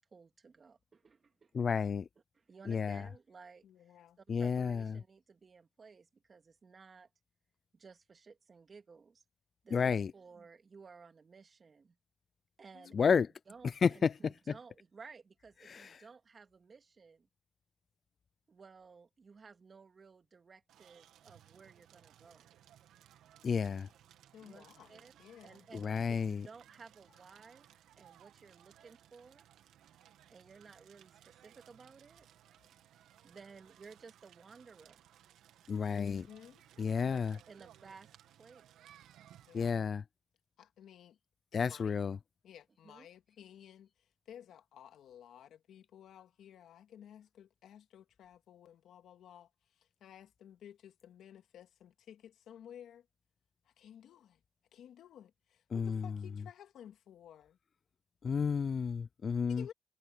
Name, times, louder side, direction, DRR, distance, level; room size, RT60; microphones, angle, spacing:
voice 1, 0.0-1.5 2.3-7.1 7.7-9.2 9.6-12.0 12.6-13.1 13.5-17.3 18.5-22.5 24.4-25.1 25.4-27.7 28.0-29.5 30.3-32.3 33.2-35.0 37.0-38.1 38.4-38.7 42.8-43.1, right 5 dB, 45° right, 2.6 m, -56 dB
voice 2, 1.5-2.0 2.7-3.0 4.3-4.8 9.7-10.1 13.0-13.3 13.8-13.9 23.4-23.9 25.8-26.4 35.7-36.2 36.8-37.4 39.5-40.0 41.5-42.2 55.7-56.0 58.2-59.6, left 6 dB, 50° left, 0.3 m, -31 dB
voice 3, 3.6-4.2 12.7-13.1 24.3-25.7 35.9-36.6 39.5-39.8 40.6-41.2 41.5-42.0 42.4-53.1 53.7-54.4 54.7-57.6 59.3-59.7, left 10 dB, 75° left, 2.0 m, -55 dB
Crackle, 20.7-39.7, right 11 dB, 80° right, 2.0 m, -62 dB
supercardioid pair, 65°, 0 cm